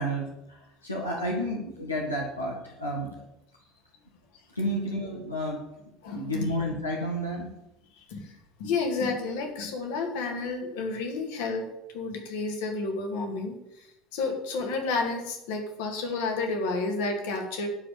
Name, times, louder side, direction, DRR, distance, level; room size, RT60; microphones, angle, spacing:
voice 1, 0.0-3.2 4.5-5.6 6.1-7.5, equal, 85° left, -3 dB, 1.6 m, -31 dB
voice 2, 6.0-6.5 7.9-11.6 11.9-17.7, left 3 dB, 60° left, 3 dB, 2.4 m, -31 dB
11.5 x 5.0 x 8.5 m, 0.87 s
figure-of-eight pair, 65°, 0 cm